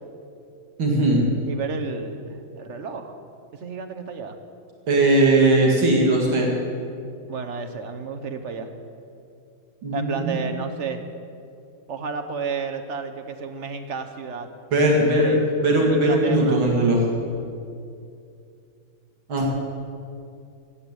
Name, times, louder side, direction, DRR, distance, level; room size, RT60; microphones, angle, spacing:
voice 1, 0.8-1.2 4.9-6.5 9.8-10.4 14.7-15.4 15.6-17.0 19.3-19.5, right 2 dB, 75° right, -1 dB, 2.8 m, -19 dB
voice 2, 1.5-3.2 3.6-4.4 7.3-8.7 9.9-11.0 11.9-14.5 14.8-15.0 15.2-15.5 16.0-16.6, right 5 dB, 50° right, 7 dB, 0.9 m, -32 dB
15.5 x 8.1 x 8.9 m, 2.5 s
omnidirectional pair, 2.3 m